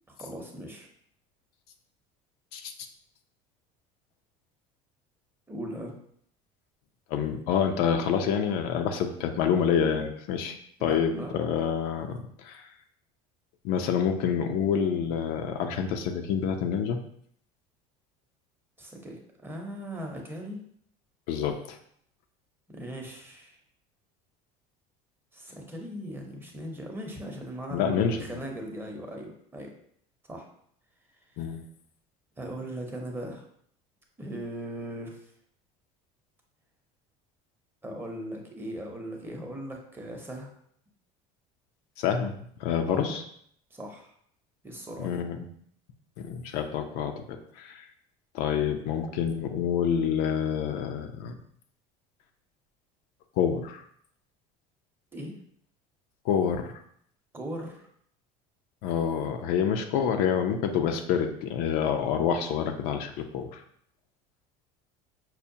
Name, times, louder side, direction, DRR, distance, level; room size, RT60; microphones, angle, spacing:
voice 1, 0.1-0.9 5.5-5.9 10.8-11.4 18.8-20.6 22.7-23.6 25.3-29.7 30.3-30.5 32.4-33.4 34.2-35.2 37.8-40.5 42.9-43.1 43.7-44.1 44.6-45.2 55.1-55.3 57.3-57.9, right 1 dB, 15° right, 1 dB, 0.7 m, -38 dB
voice 2, 7.1-10.6 10.8-12.7 13.6-17.0 21.3-21.8 27.7-28.3 31.4-31.6 42.0-43.2 45.0-45.5 46.2-47.9 48.3-51.4 53.4-53.8 56.2-56.8 58.8-63.6, left 7 dB, 70° left, 5 dB, 0.5 m, -27 dB
5.6 x 2.1 x 2.6 m, 0.66 s
supercardioid pair, 120°, 16 cm